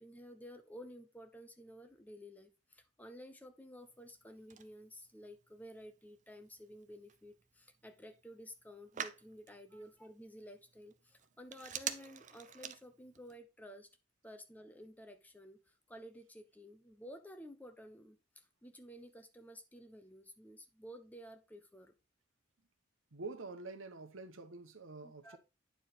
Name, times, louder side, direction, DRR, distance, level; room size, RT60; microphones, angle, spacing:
voice 1, 0.0-13.9 14.2-21.9 25.0-25.4, equal, 10° left, 0.9 m, -53 dB
Telephone, 3.8-13.4, right 8 dB, 40° right, 0.6 m, -49 dB
voice 2, 23.1-25.4, right 3 dB, 90° right, 1.0 m, -47 dB
9.2 x 4.6 x 4.1 m
head